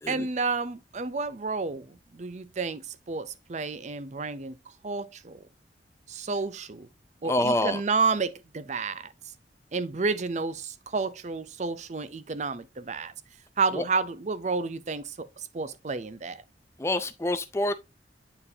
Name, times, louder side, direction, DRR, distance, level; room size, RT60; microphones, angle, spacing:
voice 1, 0.1-4.6 4.8-5.4 6.1-6.9 7.2-9.1 9.7-13.1 13.6-15.3 15.5-16.4, right 4 dB, 40° right, 0.5 m, -30 dB
voice 2, 7.2-7.8 13.7-13.8 16.8-17.7, left 1 dB, 15° left, 0.4 m, -27 dB
8.7 x 4.5 x 2.7 m
head